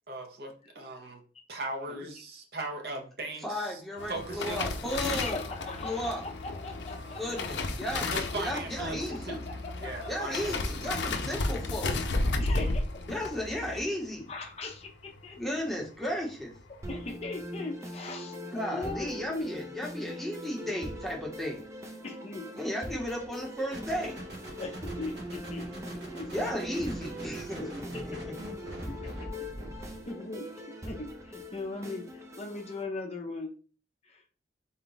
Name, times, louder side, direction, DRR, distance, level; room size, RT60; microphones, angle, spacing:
voice 1, 0.1-1.2 1.5-3.8 4.1-4.7 8.1-9.4 9.8-10.8, right 2 dB, 60° right, 3 dB, 0.7 m, -38 dB
voice 2, 3.4-5.4 5.8-6.2 7.2-9.4 10.1-12.0 13.1-14.3 15.4-16.5 18.5-21.6 22.5-24.2 26.2-28.3, equal, ahead, -2 dB, 0.9 m, -34 dB
sound 1, 4.0-15.4 15.7-16.0 16.3-16.8 17.0-17.1, left 2 dB, 85° left, 0.5 m, -33 dB
voice 3, 5.0-7.2 7.6-7.9 9.1-9.4 9.6-10.3 12.4-12.8 13.1-13.2 14.3-15.6 16.7-18.3 18.7-19.5 22.0-22.5 24.6-26.4 27.6-27.7 27.9-28.5 28.9-29.1 30.1-33.5 34.0-34.2, left 3 dB, 35° left, 2 dB, 0.5 m, -40 dB
sound 2, 16.8-32.8, equal, 15° right, 0.5 m, -42 dB
sound 3, 23.7-30.0, right 1 dB, 80° right, 1.6 m, -43 dB
3.9 x 2.3 x 3.8 m, 0.38 s
head